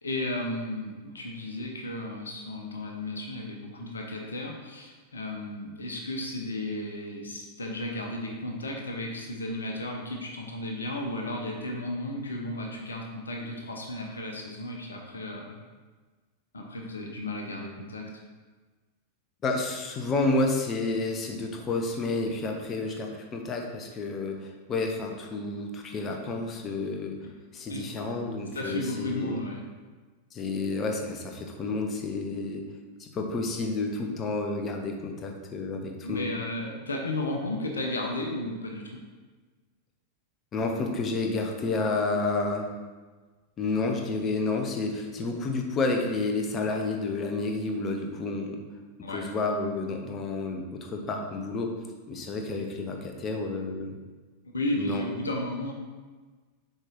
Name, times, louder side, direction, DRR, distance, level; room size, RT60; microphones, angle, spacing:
voice 1, 0.0-15.6 16.5-18.1 27.2-27.3 27.7-27.8 28.2-29.6 36.0-39.0 49.0-49.3 54.5-55.7, left 1 dB, 75° left, 1 dB, 1.0 m, -34 dB
voice 2, 19.4-27.2 27.5-29.4 30.3-32.6 33.0-36.3 40.5-42.7 43.6-48.6 49.1-51.7 52.1-54.0 54.8-55.0, left 3 dB, 25° left, 3 dB, 0.9 m, -30 dB
6.5 x 4.8 x 3.8 m, 1.3 s
figure-of-eight pair, 90°, 0 cm